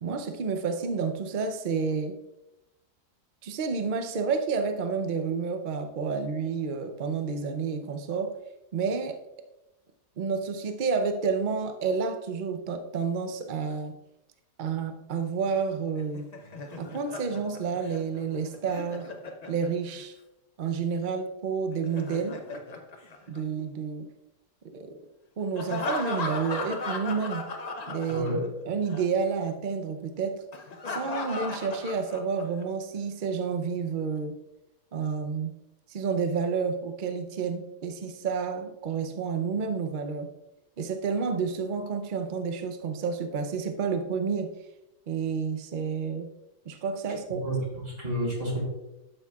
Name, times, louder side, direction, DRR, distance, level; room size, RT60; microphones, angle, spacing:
voice 1, 0.0-2.2 3.4-8.4 8.7-9.2 10.2-14.0 14.6-16.3 16.8-19.1 19.5-20.1 20.6-22.4 23.3-24.1 24.7-24.9 25.4-27.4 27.9-28.3 28.7-30.4 30.9-34.4 34.9-35.5 35.9-40.3 40.8-44.5 45.1-46.3 46.7-47.5, right 5 dB, 85° right, 7 dB, 0.4 m, -30 dB
Laughter, 16.0-20.0 21.7-23.9 25.6-28.6 28.9-29.0 30.5-32.6, left 3 dB, 50° left, 0.5 m, -36 dB
voice 2, 28.1-28.4 47.4-48.6, right 1 dB, 45° right, -3 dB, 3.6 m, -30 dB
11.5 x 6.4 x 2.4 m, 0.92 s
omnidirectional pair, 1.8 m